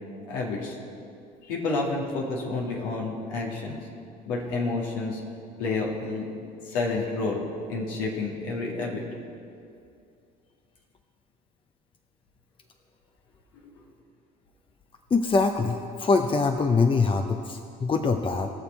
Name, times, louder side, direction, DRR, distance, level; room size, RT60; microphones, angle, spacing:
voice 1, 0.3-0.8 1.4-3.8 4.3-5.2 5.6-6.3 6.7-7.4 7.7-9.0, left 3 dB, 80° left, -1 dB, 2.1 m, -29 dB
voice 2, 15.1-18.5, left 4 dB, 25° left, 6 dB, 0.7 m, -23 dB
19.5 x 6.8 x 4.5 m, 2.5 s
hypercardioid pair, 70°, 21 cm